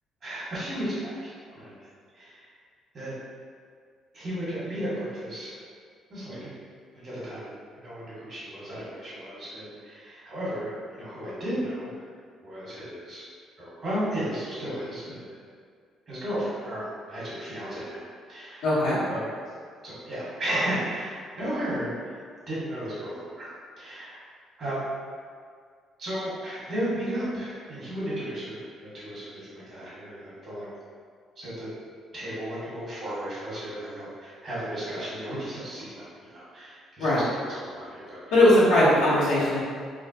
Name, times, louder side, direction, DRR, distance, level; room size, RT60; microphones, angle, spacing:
voice 1, 0.2-1.7 2.1-2.5 2.9-3.1 4.1-5.6 6.1-6.5 6.9-12.1 12.4-13.3 13.6-15.2 16.1-18.0 18.3-18.8 19.1-19.3 19.8-22.2 22.5-23.5 23.8-24.2 24.6-24.8 26.0-30.7 31.4-31.7 32.1-38.4 38.8-38.9, right 1 dB, 45° right, -9 dB, 1.4 m, -34 dB
voice 2, 18.6-19.0 37.0-37.2 38.3-39.6, left 1 dB, 90° left, -10 dB, 0.9 m, -19 dB
3.0 x 2.2 x 2.7 m, 2.1 s
cardioid pair, 90°, 0 cm